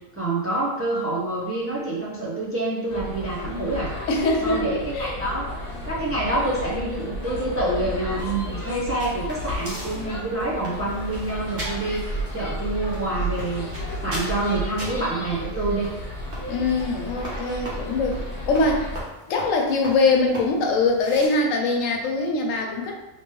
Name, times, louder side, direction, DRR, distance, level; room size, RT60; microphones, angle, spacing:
voice 1, 0.1-3.9 4.4-5.5 5.9-13.7 14.0-15.9, right 2 dB, 20° right, -5 dB, 0.4 m, -27 dB
sound 1, 2.9-19.0, equal, 55° left, 1.0 m, -33 dB
voice 2, 4.1-5.2 16.5-18.2 18.5-18.9 19.3-22.9, left 3 dB, 85° left, 2 dB, 1.0 m, -22 dB
sound 2, 8.2-21.3, right 1 dB, 50° right, 1.0 m, -40 dB
3.2 x 3.0 x 3.0 m, 0.99 s
omnidirectional pair, 1.3 m